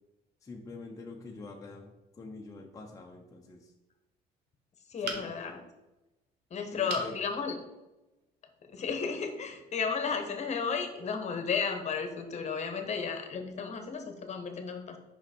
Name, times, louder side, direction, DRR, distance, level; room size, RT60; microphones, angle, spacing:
voice 1, 0.4-3.7 5.0-5.4 6.7-7.1, left 3 dB, 20° left, 0 dB, 0.8 m, -46 dB
voice 2, 4.9-5.6 6.5-7.6 8.7-15.0, left 5 dB, 45° left, 5 dB, 1.1 m, -33 dB
sound 1, 5.0-5.6 6.9-7.2 7.7-7.8 8.2-8.3, right 5 dB, 80° right, 1.2 m, -38 dB
5.7 x 5.4 x 4.3 m, 1.0 s
cardioid pair, 110°, 17 cm